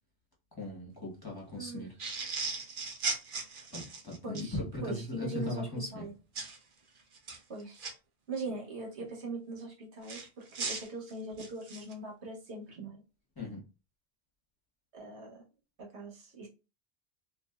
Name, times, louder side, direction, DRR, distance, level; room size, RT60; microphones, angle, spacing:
voice 1, 0.6-1.9 3.7-6.0 13.4-13.6, left 1 dB, 20° left, -4 dB, 1.1 m, -38 dB
voice 2, 1.6-1.9 4.2-6.1 7.5-7.9 8.3-13.0 14.9-15.4 15.8-16.5, right 3 dB, 85° right, -1 dB, 1.3 m, -41 dB
sound 1, 2.0-4.5 6.4-6.6 7.1-7.9 10.1-11.9, right 4 dB, 55° right, 0.8 m, -37 dB
3.2 x 2.6 x 2.3 m, 0.30 s
omnidirectional pair, 1.1 m